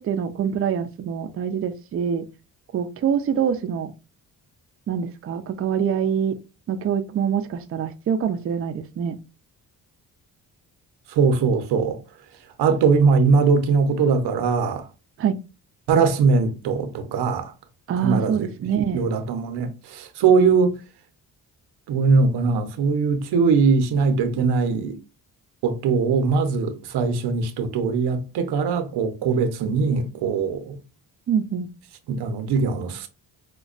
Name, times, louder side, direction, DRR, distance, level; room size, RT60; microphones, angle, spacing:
voice 1, 0.0-2.3 2.7-3.9 4.9-6.4 6.7-9.2 15.2-15.4 17.9-19.0 31.3-31.7, right 7 dB, 35° right, 0.4 m, -25 dB
voice 2, 11.1-12.0 12.6-14.9 15.9-17.5 18.0-18.5 18.9-20.8 21.9-25.0 25.6-30.8 32.1-33.1, right 5 dB, 90° right, 0.7 m, -21 dB
5.1 x 2.2 x 2.4 m
cardioid pair, 115°, 39 cm